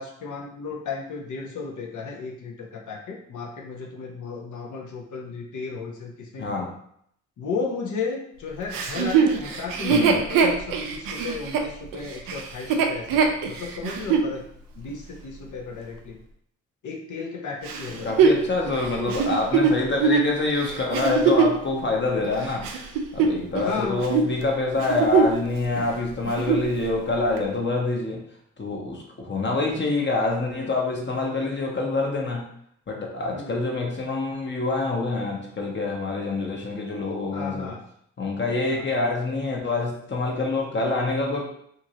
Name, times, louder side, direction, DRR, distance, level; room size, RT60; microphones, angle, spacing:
voice 1, 0.0-6.7 7.4-14.4 14.8-16.2 16.8-18.1 23.6-24.0 33.3-33.6 37.3-37.8 38.7-38.9, left 5 dB, 65° left, 0 dB, 0.8 m, -34 dB
voice 2, 6.4-6.7 9.9-10.2 17.8-22.7 23.1-28.2 28.6-32.5 32.9-37.7 38.2-41.4, left 3 dB, 35° left, -1 dB, 0.9 m, -26 dB
Chuckle chortle, 8.7-14.3 14.9-15.0 17.7-21.6 22.2-23.7 24.0-24.3 24.7-25.5 25.8-25.9 26.2-26.7 27.4-27.5, right 5 dB, 85° right, 0.5 m, -22 dB
2.8 x 2.6 x 2.8 m, 0.69 s
supercardioid pair, 50°, 33 cm